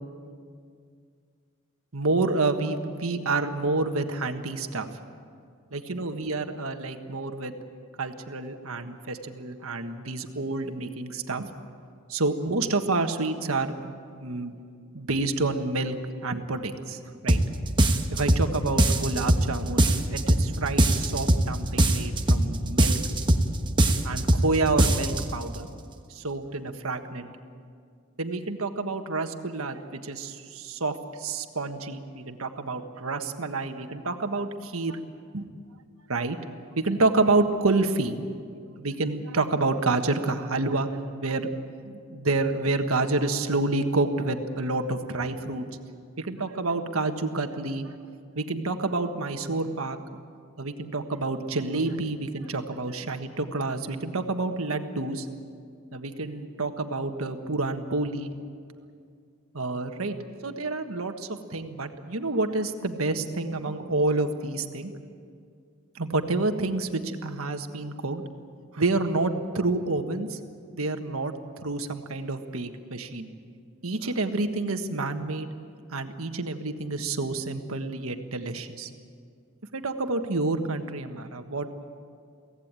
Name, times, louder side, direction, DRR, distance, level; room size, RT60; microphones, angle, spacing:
voice 1, 1.9-4.9 5.7-7.5 8.0-11.5 12.1-14.5 14.9-16.0 16.2-17.4 18.1-23.0 24.0-25.7 26.1-27.3 28.2-35.0 35.3-35.5 36.1-36.4 36.7-38.2 38.8-41.5 41.8-45.6 46.2-47.9 48.3-50.0 50.6-55.3 55.9-58.3 59.5-64.9 65.9-68.2 68.7-70.4 70.7-73.3 73.8-75.5 75.9-78.9 79.7-81.7, right 3 dB, 85° right, 6 dB, 1.5 m, -28 dB
sound 1, 17.3-17.5 17.8-18.5 18.8-19.5 19.8-20.5 20.8-21.5 21.8-22.5 22.8-23.5 23.8-24.5 24.8-25.2, right 1 dB, 20° right, 1.2 m, -20 dB
23.5 x 17.0 x 8.9 m, 2.2 s
head